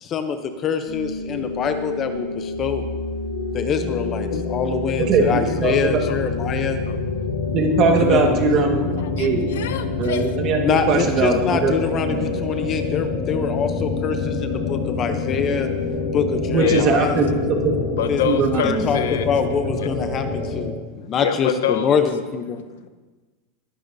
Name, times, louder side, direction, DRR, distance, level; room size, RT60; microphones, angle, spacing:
voice 1, 0.0-2.8 3.5-6.8 8.0-8.4 10.6-15.7 16.1-17.2 18.1-18.2 18.6-19.0 19.3-20.7 21.0-22.6, left 6 dB, 25° left, 8 dB, 0.6 m, -24 dB
sound 1, 0.9-20.7, left 3 dB, 55° left, 3.0 m, -26 dB
voice 2, 5.6-6.0 7.5-9.4 10.0-11.7 12.1-12.3 16.5-17.7 18.2-18.9, right 4 dB, 35° right, 3 dB, 1.5 m, -20 dB
voice 3, 9.2-10.3 12.5-12.7 16.6-16.8 18.0-19.3 19.8-19.9 21.0-22.1 22.6-22.9, left 10 dB, 85° left, 10 dB, 0.8 m, -27 dB
20.0 x 10.5 x 2.7 m, 1.3 s
supercardioid pair, 165°, 0 cm